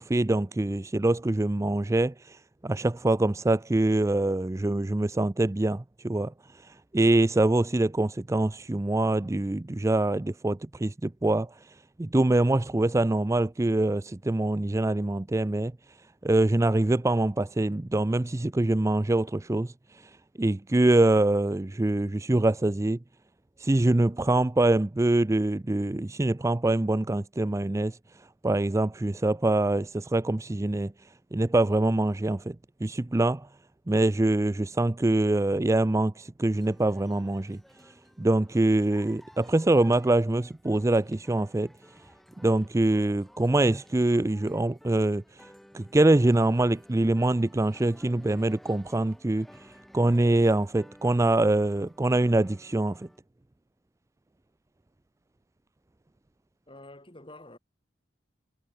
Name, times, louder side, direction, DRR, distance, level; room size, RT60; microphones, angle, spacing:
voice 1, 0.0-6.3 6.6-11.5 12.0-15.7 16.2-19.7 20.4-23.0 23.6-28.0 28.4-30.9 31.3-32.6 32.8-33.5 33.9-37.6 38.2-41.7 42.4-45.2 45.7-49.5 49.9-53.1, right 2 dB, 15° right, 0.4 m, -24 dB
sound 1, 36.5-53.2, equal, ahead, 3.3 m, -54 dB
voice 2, 56.7-57.6, left 2 dB, 30° left, 6.4 m, -47 dB
head